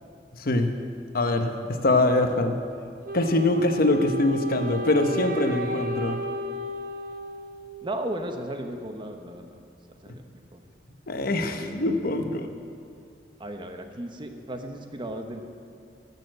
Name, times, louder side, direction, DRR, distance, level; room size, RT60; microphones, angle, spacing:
voice 1, 0.3-0.7 1.1-2.6 3.1-6.2 11.1-12.5, left 2 dB, 55° left, 7 dB, 0.8 m, -23 dB
Wind instrument woodwind instrument, 3.0-8.1, equal, 55° right, 0.9 m, -34 dB
voice 2, 7.8-9.5 10.0-10.6 11.6-12.1 13.4-15.4, right 1 dB, 30° right, 5 dB, 0.8 m, -35 dB
13.5 x 6.8 x 7.6 m, 2.4 s
head